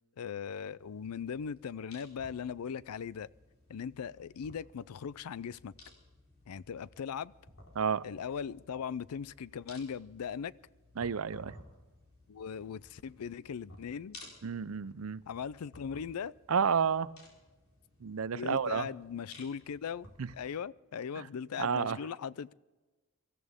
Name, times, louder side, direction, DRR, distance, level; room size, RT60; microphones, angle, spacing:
voice 1, 0.2-3.3 3.7-5.7 6.5-7.3 8.0-10.5 12.3-14.2 15.3-16.3 18.3-22.5, left 7 dB, 90° left, 0.4 m, -39 dB
sound 1, 0.8-20.4, left 2 dB, 65° left, 4.3 m, -57 dB
voice 2, 11.0-11.5 14.4-15.2 16.5-17.1 18.0-18.9 20.2-20.3 21.6-22.0, right 6 dB, 65° right, 0.5 m, -30 dB
24.0 x 14.5 x 3.6 m
head